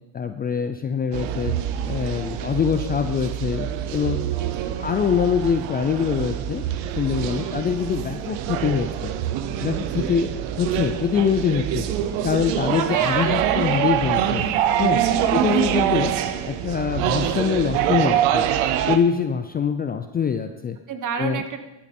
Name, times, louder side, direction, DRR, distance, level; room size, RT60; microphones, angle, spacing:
voice 1, 0.1-1.6 1.9-4.2 4.8-6.6 7.0-9.1 9.6-10.3 10.6-11.9 12.2-14.5 14.8-15.0 15.3-16.1 16.4-18.5 18.9-20.8 21.2-21.4, left 7 dB, 20° left, 8 dB, 0.4 m, -24 dB
sound 1, 1.1-19.0, right 10 dB, 85° right, 1.0 m, -25 dB
voice 2, 4.2-4.8 7.3-7.6 9.9-10.1 12.7-13.4 14.3-14.4 14.9-15.2 20.9-21.6, right 6 dB, 40° right, 8 dB, 1.4 m, -30 dB
13.5 x 8.6 x 4.3 m, 1.1 s
cardioid pair, 115°, 45 cm